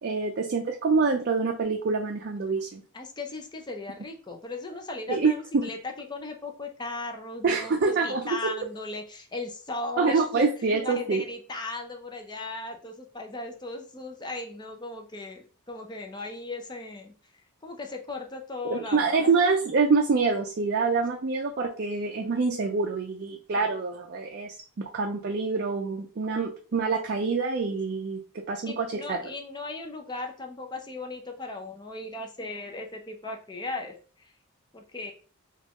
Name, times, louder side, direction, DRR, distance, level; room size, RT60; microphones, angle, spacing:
voice 1, 0.0-2.8 5.1-5.7 7.4-8.5 10.0-11.2 18.7-28.2 28.5-29.2, right 4 dB, 45° right, 2 dB, 0.4 m, -26 dB
voice 2, 2.9-7.8 8.0-10.5 10.8-19.4 23.6-23.7 28.6-34.3 34.7-35.1, left 2 dB, 20° left, 3 dB, 0.5 m, -37 dB
4.1 x 2.4 x 2.9 m, 0.38 s
head